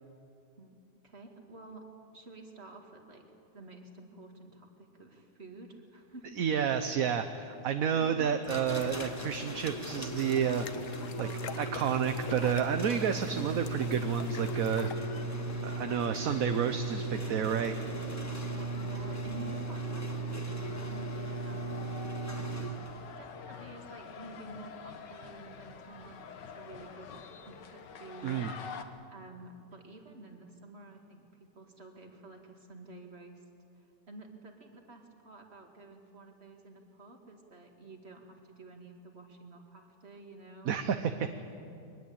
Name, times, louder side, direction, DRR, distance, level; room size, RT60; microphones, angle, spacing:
voice 1, 0.6-1.8 2.1-3.3 3.5-6.3 7.9-8.3 11.2-11.7 13.1-13.3 18.2-22.6 23.2-28.4 29.1-33.4 33.8-40.7, right 2 dB, 35° right, 3 dB, 2.5 m, -50 dB
voice 2, 6.4-11.3 11.6-14.9 15.3-17.7 28.2-28.5 40.6-41.3, right 7 dB, 60° right, 8 dB, 1.2 m, -30 dB
sound 1, 8.4-23.1, right 2 dB, 10° left, 1.3 m, -37 dB
sound 2, 8.7-15.0, left 8 dB, 55° left, 1.1 m, -46 dB
sound 3, 14.3-28.8, left 6 dB, 75° left, 1.8 m, -49 dB
23.0 x 20.0 x 8.7 m, 2.7 s
omnidirectional pair, 1.9 m